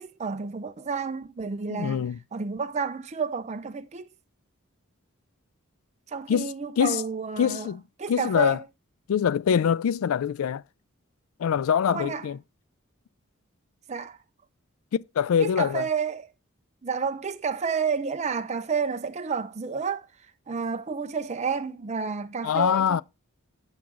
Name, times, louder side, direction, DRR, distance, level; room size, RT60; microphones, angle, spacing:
voice 1, 0.0-4.1 6.1-7.7 8.0-8.6 11.9-12.2 13.9-14.2 15.4-16.3 16.8-20.1 20.5-23.0, right 5 dB, 30° right, 0.5 m, -30 dB
voice 2, 1.7-2.2 6.3-7.0 7.4-7.8 8.1-8.6 9.1-10.6 11.4-12.4 14.9-15.9 22.4-23.0, left 8 dB, 70° left, 0.3 m, -24 dB
7.7 x 5.8 x 3.7 m
head